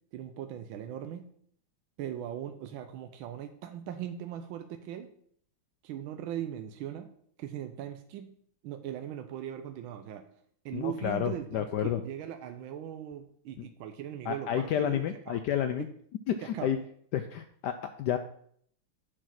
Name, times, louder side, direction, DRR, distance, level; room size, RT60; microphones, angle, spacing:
voice 1, 0.1-1.2 2.0-5.1 5.8-7.1 7.4-8.3 8.6-10.2 10.6-15.4 16.5-16.7, right 10 dB, 80° right, 7 dB, 1.5 m, -39 dB
voice 2, 10.7-12.0 13.6-13.7 14.2-15.9 16.3-16.8 17.1-18.2, left 9 dB, 75° left, 9 dB, 1.0 m, -30 dB
9.1 x 4.8 x 5.8 m, 0.63 s
omnidirectional pair, 2.2 m